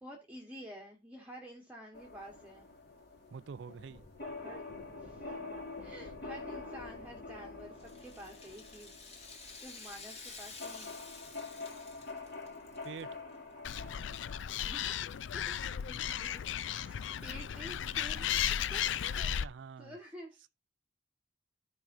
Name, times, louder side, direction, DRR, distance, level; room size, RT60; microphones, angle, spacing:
voice 1, 0.0-2.7 4.4-4.6 5.0-5.2 5.8-8.9 9.6-10.9 14.6-15.0 15.3-15.5 15.9-19.4 19.8-20.5, equal, 10° right, 1.2 m, -50 dB
sound 1, 1.9-14.4, left 3 dB, 55° left, 2.5 m, -46 dB
voice 2, 3.3-4.0 12.8-13.2 19.4-20.0, right 6 dB, 70° right, 0.4 m, -46 dB
Rattle (instrument), 7.8-13.0 13.3-13.4 14.3-14.4, left 4 dB, 35° left, 2.1 m, -50 dB
Animal, 13.6-19.4, left 9 dB, 85° left, 0.4 m, -35 dB
13.0 x 4.9 x 2.5 m
head